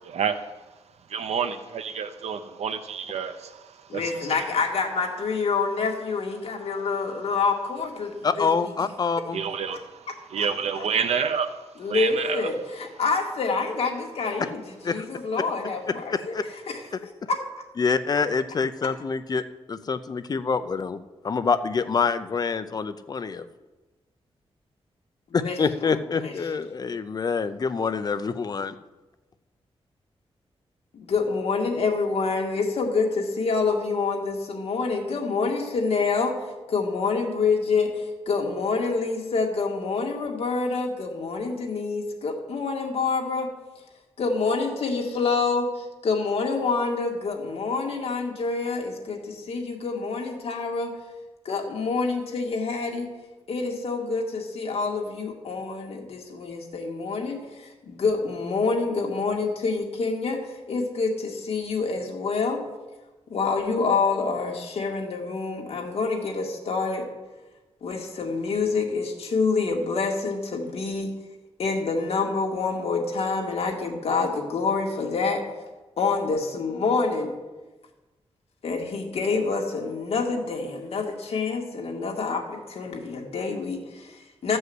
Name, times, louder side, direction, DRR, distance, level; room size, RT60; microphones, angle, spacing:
voice 1, 1.1-3.4 3.9-4.0 9.3-9.8 10.3-11.5 11.9-12.4, right 6 dB, 85° right, 8 dB, 0.7 m, -28 dB
voice 2, 3.9-8.7 9.7-9.8 10.1-10.5 10.7-10.8 11.8-16.8 17.3-17.4 25.4-26.3 30.9-36.4 36.7-43.5 44.2-50.9 51.4-53.1 53.5-62.6 63.3-67.1 67.8-71.1 71.6-75.4 76.0-77.3 78.6-84.6, left 4 dB, 70° left, 1 dB, 2.1 m, -27 dB
voice 3, 8.2-9.4 14.8-15.1 16.1-16.4 17.8-19.4 19.7-21.0 21.2-23.5 25.3-28.7, left 5 dB, 40° left, 11 dB, 0.6 m, -26 dB
13.5 x 5.5 x 7.9 m, 1.1 s
wide cardioid pair, 155°, 11 cm